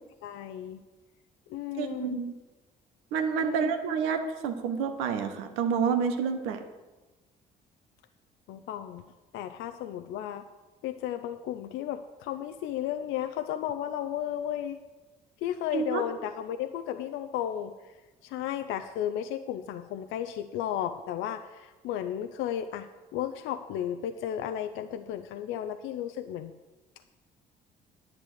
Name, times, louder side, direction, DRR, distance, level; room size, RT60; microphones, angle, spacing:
voice 1, 0.2-0.8 1.5-2.2 3.4-3.7 8.5-9.0 9.3-10.4 10.8-14.8 15.4-17.7 18.2-26.5, left 10 dB, 70° left, 8 dB, 0.6 m, -34 dB
voice 2, 1.8-2.3 3.1-6.6 15.7-16.0, right 6 dB, 80° right, 7 dB, 1.2 m, -29 dB
10.5 x 6.9 x 7.8 m, 1.2 s
hypercardioid pair, 60°, 21 cm